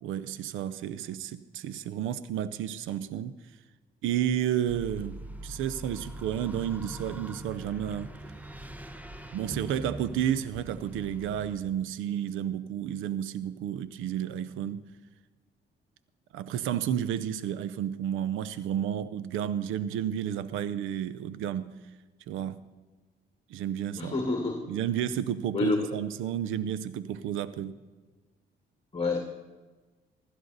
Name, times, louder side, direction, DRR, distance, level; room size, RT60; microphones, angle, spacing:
voice 1, 0.0-3.3 4.0-8.1 9.3-14.8 16.3-21.7 22.3-22.6 23.5-24.1 24.7-27.8, right 10 dB, 90° right, 0.5 m, -31 dB
sound 1, 4.7-11.6, right 1 dB, 10° right, 0.9 m, -42 dB
voice 2, 24.0-24.6 25.5-25.8 28.9-29.2, left 3 dB, 30° left, 1.7 m, -27 dB
16.0 x 12.5 x 4.0 m
cardioid pair, 90°, 20 cm